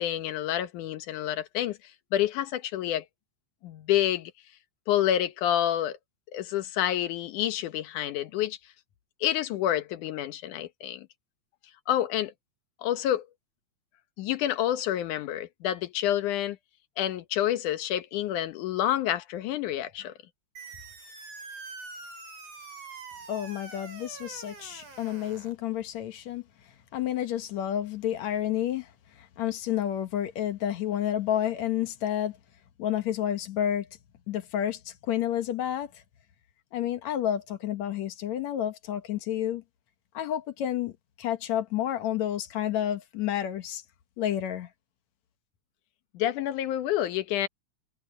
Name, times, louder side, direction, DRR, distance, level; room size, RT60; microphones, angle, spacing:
voice 1, 0.0-1.8 2.1-3.1 3.6-4.3 4.9-6.0 6.3-8.6 9.2-11.1 11.9-12.3 12.8-13.3 14.2-16.6 17.0-20.1 46.1-47.5, left 12 dB, 85° left, 2.6 m, -28 dB
sound 1, 20.6-25.6, right 3 dB, 85° right, 8.8 m, -44 dB
voice 2, 23.3-26.4 26.9-32.4 32.8-33.9 34.3-36.0 36.7-39.6 40.1-40.9 41.2-43.8 44.2-44.7, left 11 dB, 70° left, 2.4 m, -30 dB
omnidirectional pair, 3.5 m